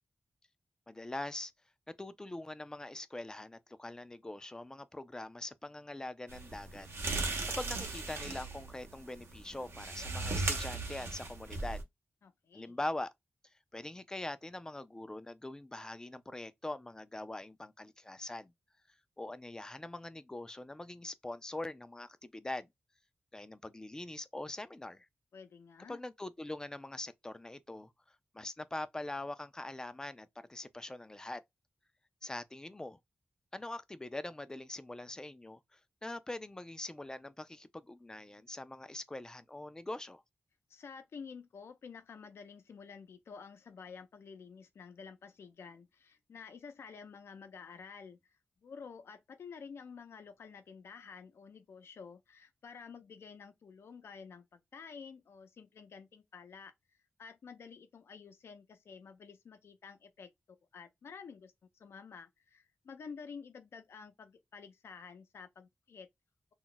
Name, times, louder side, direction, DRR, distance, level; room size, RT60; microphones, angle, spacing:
voice 1, 0.9-1.5 1.9-6.9 7.6-11.8 12.5-13.1 13.7-18.5 19.2-22.7 23.3-25.1 25.9-31.4 32.2-33.0 33.5-40.2, left 2 dB, 15° left, 0.3 m, -43 dB
sound 1, 6.3-11.8, right 3 dB, 75° right, 0.7 m, -37 dB
voice 2, 12.2-12.8 25.3-26.0 40.7-48.4 48.6-56.7 57.2-60.3 60.7-66.1, left 5 dB, 85° left, 0.5 m, -50 dB
2.3 x 2.1 x 3.8 m
wide cardioid pair, 105°, 4 cm